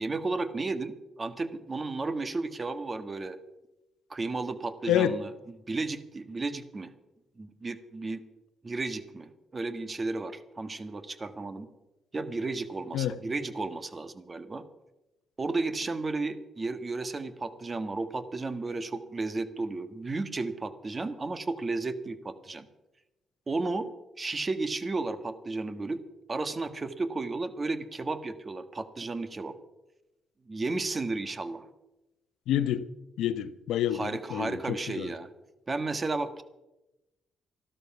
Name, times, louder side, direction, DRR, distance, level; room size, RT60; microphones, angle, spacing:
voice 1, 0.0-3.4 4.1-5.3 5.7-6.9 7.4-8.2 8.6-11.7 12.1-14.6 15.4-22.7 23.5-23.9 24.2-26.0 26.3-29.5 30.5-31.7 33.9-35.3 35.7-36.4, right 3 dB, 30° right, 11 dB, 1.5 m, -33 dB
voice 2, 32.5-32.9 33.2-35.1, left 10 dB, 80° left, 13 dB, 0.8 m, -28 dB
14.0 x 12.5 x 5.9 m, 0.98 s
supercardioid pair, 70°, 0 cm